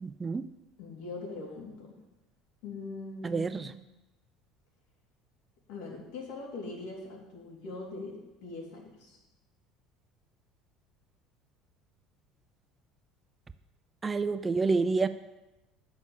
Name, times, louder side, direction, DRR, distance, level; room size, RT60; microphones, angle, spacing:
voice 1, 0.0-0.4 3.2-3.7 14.0-15.1, right 4 dB, 15° right, 12 dB, 0.3 m, -28 dB
voice 2, 0.8-2.0 2.6-3.7 5.7-9.2, left 3 dB, 80° left, -1 dB, 3.1 m, -41 dB
9.4 x 6.5 x 7.2 m, 1.0 s
cardioid pair, 170°, 0 cm